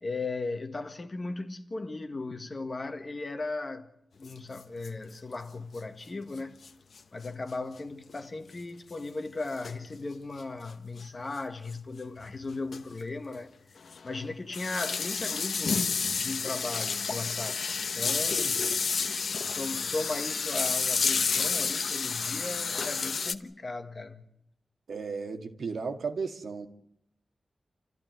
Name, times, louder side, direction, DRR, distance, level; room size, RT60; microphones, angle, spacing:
voice 1, 0.0-6.6 7.1-13.5 14.0-18.7 19.4-24.3, left 3 dB, 30° left, 1.7 m, -37 dB
sound 1, 4.2-4.3 4.6-4.7 4.8-4.9 6.6-6.7 7.0-7.1 8.1-8.2 9.6-9.9 11.0-11.1 11.7-11.8 12.2-12.3 12.7-12.9 13.2-13.3 13.9-23.3, left 5 dB, 65° left, 1.0 m, -30 dB
voice 2, 24.9-26.7, right 5 dB, 70° right, 2.0 m, -34 dB
28.5 x 14.5 x 9.4 m
wide cardioid pair, 170°, 0 cm